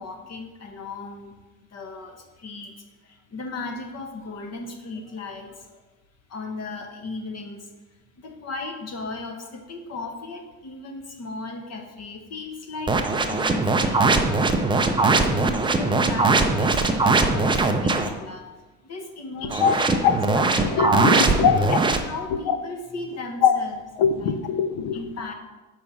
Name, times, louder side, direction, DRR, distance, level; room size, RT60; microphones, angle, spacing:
voice 1, 0.0-1.4 1.6-5.8 6.3-7.7 8.2-14.0 14.7-18.5 18.8-20.7 21.2-23.8 24.1-24.4 24.9-25.3, left 3 dB, 35° left, 3 dB, 1.1 m, -36 dB
sound 1, 12.9-18.1 19.5-22.0, right 3 dB, 10° right, 0.5 m, -21 dB
voice 2, 19.4-19.8 20.0-21.6 22.5-22.6 23.4-23.6 24.0-25.0, left 7 dB, 60° left, 11 dB, 0.8 m, -22 dB
5.1 x 5.0 x 6.0 m, 1.2 s
supercardioid pair, 95°, 43 cm